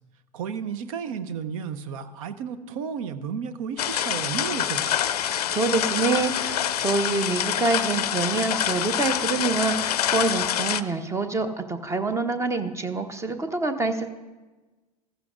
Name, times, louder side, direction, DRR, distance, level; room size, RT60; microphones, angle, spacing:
voice 1, 0.3-5.0, right 7 dB, 55° right, 13 dB, 0.8 m, -33 dB
sound 1, 3.8-10.8, left 10 dB, 65° left, 0.5 m, -26 dB
voice 2, 5.5-14.1, right 3 dB, 15° right, 9 dB, 0.8 m, -26 dB
14.5 x 14.5 x 2.5 m, 1.2 s
figure-of-eight pair, 85°, 21 cm